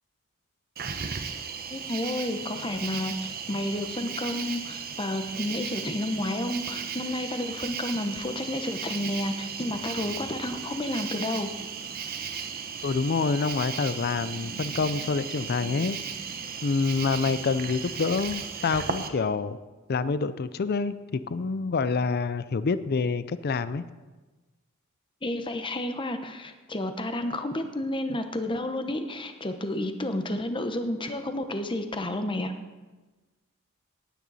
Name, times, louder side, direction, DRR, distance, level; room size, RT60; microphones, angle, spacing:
Cricket, 0.8-19.1, right 6 dB, 45° right, 0.9 m, -36 dB
voice 1, 1.7-11.5 25.2-32.5, left 1 dB, 25° left, 7 dB, 0.9 m, -31 dB
voice 2, 12.8-16.0 16.6-19.6 19.9-23.8, left 4 dB, 45° left, 14 dB, 0.4 m, -27 dB
18.5 x 9.2 x 4.1 m, 1.2 s
head